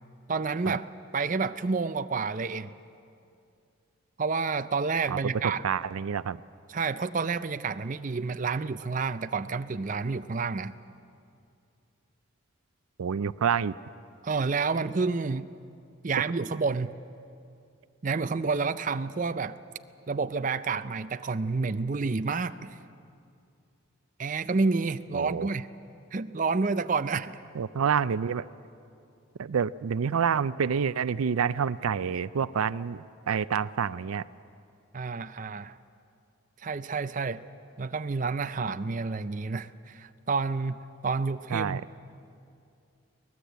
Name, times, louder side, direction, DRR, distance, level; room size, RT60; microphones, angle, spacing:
voice 1, 0.3-0.9 1.1-2.7 4.2-5.6 6.7-10.7 14.2-15.5 16.0-17.0 18.0-19.6 20.1-22.7 24.2-25.7 26.1-27.3 34.9-35.8 36.6-37.4 37.8-42.0, right 4 dB, 35° right, 11 dB, 0.5 m, -29 dB
voice 2, 5.4-6.4 13.0-13.7 25.1-25.5 27.5-28.4 29.4-34.2 41.5-41.9, right 7 dB, 90° right, 17 dB, 0.4 m, -28 dB
23.5 x 18.5 x 8.1 m, 2.5 s
head